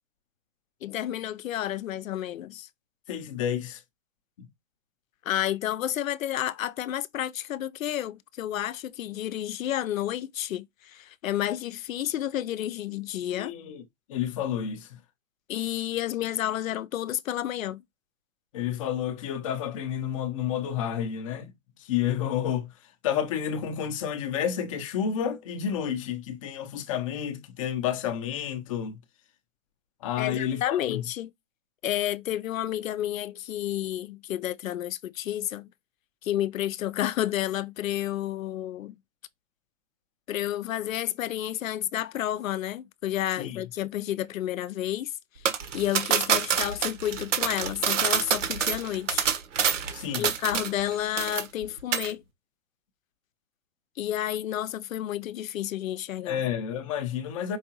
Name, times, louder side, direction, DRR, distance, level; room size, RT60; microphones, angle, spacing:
voice 1, 0.8-2.7 5.2-13.5 15.5-17.8 30.2-31.3 31.8-35.7 36.2-39.0 40.3-49.3 50.2-52.2 54.0-56.4, left 12 dB, 80° left, 0.6 m, -31 dB
voice 2, 3.1-3.8 13.3-13.8 14.1-14.9 18.5-21.5 21.8-22.7 23.0-29.0 30.0-31.0 43.4-43.6 49.9-50.3 56.3-57.6, left 9 dB, 25° left, 0.6 m, -30 dB
sound 1, 45.5-50.9 51.2-51.6 51.9-52.1, right 8 dB, 65° right, 1.3 m, -26 dB
4.7 x 3.5 x 2.9 m
hypercardioid pair, 150°, 39 cm